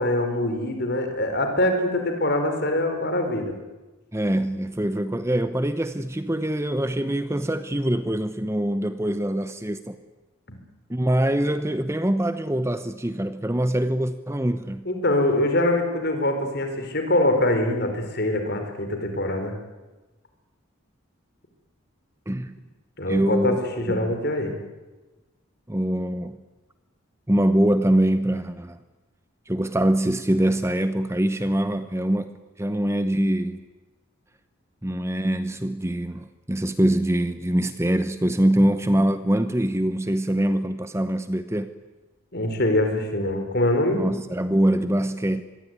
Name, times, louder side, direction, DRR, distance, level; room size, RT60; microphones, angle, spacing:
voice 1, 0.0-3.5 10.5-10.6 14.8-19.6 23.0-24.6 42.3-44.0, left 1 dB, 50° left, 6 dB, 4.6 m, -24 dB
voice 2, 4.1-10.0 10.9-14.9 22.3-22.5 23.1-24.1 25.7-26.4 27.3-28.8 29.5-32.3 32.6-33.6 34.8-41.7 44.0-45.4, right 1 dB, 15° right, 11 dB, 0.9 m, -24 dB
26.0 x 21.5 x 9.6 m, 1.2 s
head